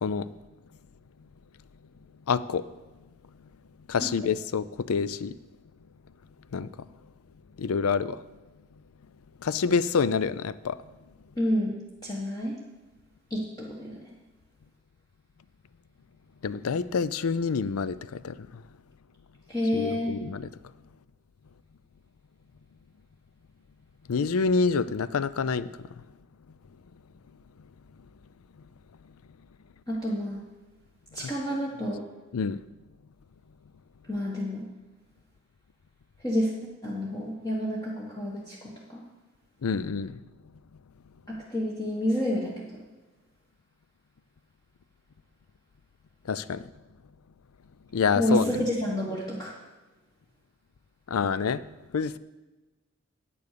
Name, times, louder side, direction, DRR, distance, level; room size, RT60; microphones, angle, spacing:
voice 1, 2.3-2.7 3.9-5.3 6.5-6.7 7.6-8.2 9.4-10.8 16.4-18.6 19.7-20.5 24.1-25.7 31.2-31.3 32.3-32.6 39.6-40.2 46.3-46.6 47.9-48.5 51.1-51.6 51.9-52.2, left 5 dB, 80° left, 0.5 m, -27 dB
voice 2, 11.4-11.7 12.0-12.6 13.3-14.1 19.5-20.1 29.9-30.4 31.1-32.0 34.1-34.6 36.2-36.5 36.8-39.0 41.3-42.8 48.1-49.5, equal, 15° left, 1.5 m, -29 dB
10.5 x 8.6 x 6.7 m
head